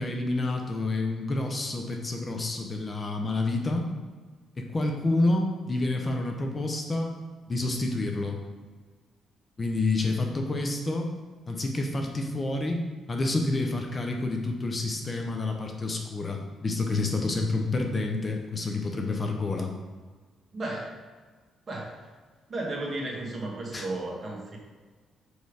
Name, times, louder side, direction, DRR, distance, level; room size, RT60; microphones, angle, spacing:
voice 1, 0.0-3.9 4.6-7.1 7.5-8.4 9.6-11.1 11.5-19.7 23.7-23.9, left 2 dB, 30° left, 2 dB, 0.8 m, -28 dB
voice 2, 20.5-20.9 21.7-22.1 22.5-24.6, right 2 dB, 40° right, -2 dB, 1.5 m, -34 dB
4.9 x 4.5 x 4.8 m, 1.4 s
cardioid pair, 90°, 0 cm